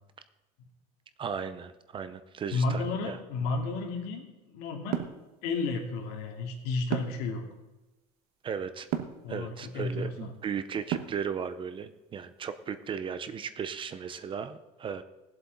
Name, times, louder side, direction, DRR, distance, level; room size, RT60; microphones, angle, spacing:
voice 1, 1.2-3.2 8.4-8.9 9.3-15.0, right 7 dB, 30° right, 12 dB, 0.7 m, -36 dB
voice 2, 2.5-5.0 5.4-7.4 9.2-10.3, left 3 dB, 70° left, 2 dB, 2.6 m, -32 dB
sound 1, 4.9-5.2 6.9-7.3 8.9-9.2 10.9-11.3, right 10 dB, 60° right, 1.2 m, -31 dB
20.0 x 7.8 x 4.0 m, 1.1 s
cardioid pair, 130°, 17 cm